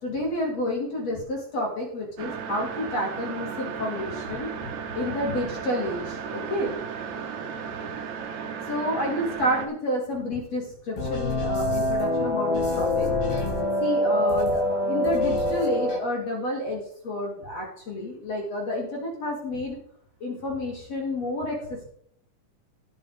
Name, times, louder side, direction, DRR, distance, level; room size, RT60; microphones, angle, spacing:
voice 1, 0.0-4.5 4.9-6.7 8.7-13.1 13.8-19.8 20.2-21.8, left 1 dB, 50° left, -1 dB, 3.5 m, -30 dB
sound 1, 2.2-9.7, right 6 dB, 60° right, 2.6 m, -35 dB
sound 2, 11.0-16.0, left 1 dB, 85° left, 4.4 m, -25 dB
18.0 x 6.3 x 4.9 m, 0.65 s
omnidirectional pair, 4.0 m